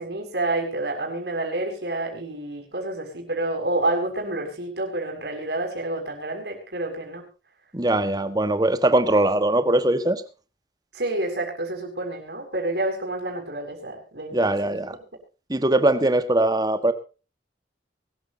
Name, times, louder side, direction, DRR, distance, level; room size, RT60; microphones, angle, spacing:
voice 1, 0.0-7.2 10.9-14.8, right 2 dB, 65° right, 3 dB, 6.8 m, -29 dB
voice 2, 7.7-10.2 14.3-15.0 15.5-16.9, right 1 dB, 20° right, 10 dB, 1.5 m, -21 dB
23.5 x 14.0 x 2.8 m, 0.33 s
head